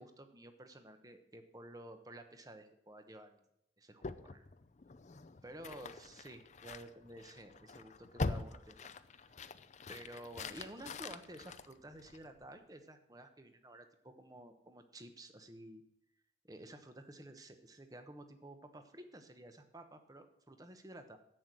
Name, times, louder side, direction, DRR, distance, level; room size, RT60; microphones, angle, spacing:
voice 1, 0.0-3.4 3.8-4.5 5.4-9.4 9.9-15.8 16.4-21.2, right 1 dB, 20° right, 8 dB, 1.0 m, -52 dB
sound 1, 4.0-12.5, left 3 dB, 40° left, 0.5 m, -44 dB
11.0 x 8.3 x 6.2 m, 0.78 s
head